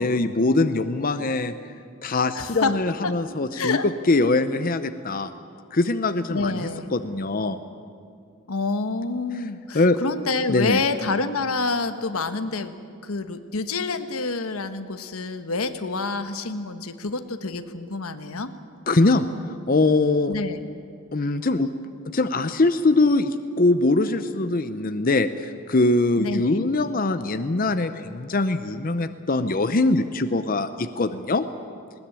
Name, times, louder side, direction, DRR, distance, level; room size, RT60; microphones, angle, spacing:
voice 1, 0.0-1.5 2.0-5.3 5.7-7.6 9.7-10.0 10.5-10.8 18.9-19.3 19.7-20.3 21.1-21.7 22.1-31.4, left 2 dB, 40° left, 10 dB, 0.7 m, -22 dB
voice 2, 2.3-2.8 3.0-3.1 3.5-3.8 6.3-6.9 8.5-12.7 13.0-18.5 20.3-20.6 26.2-26.6, left 3 dB, 85° left, 9 dB, 1.2 m, -27 dB
20.0 x 19.0 x 8.9 m, 2.4 s
head